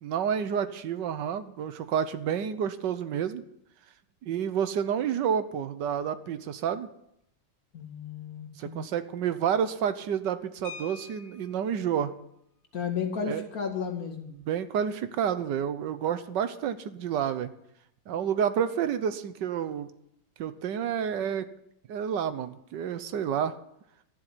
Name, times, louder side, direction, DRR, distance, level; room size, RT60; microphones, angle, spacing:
voice 1, 0.0-3.4 4.2-6.9 8.6-12.1 13.3-13.4 14.3-17.5 18.1-19.9 20.4-21.5 21.9-23.6, right 8 dB, 70° right, 12 dB, 1.5 m, -29 dB
voice 2, 7.7-8.8 12.7-14.3, left 6 dB, 50° left, 3 dB, 2.4 m, -33 dB
sound 1, 10.6-11.7 13.2-13.3 13.6-13.8 14.2-14.5, left 7 dB, 75° left, 2.7 m, -46 dB
13.0 x 7.7 x 9.8 m, 0.77 s
omnidirectional pair, 2.1 m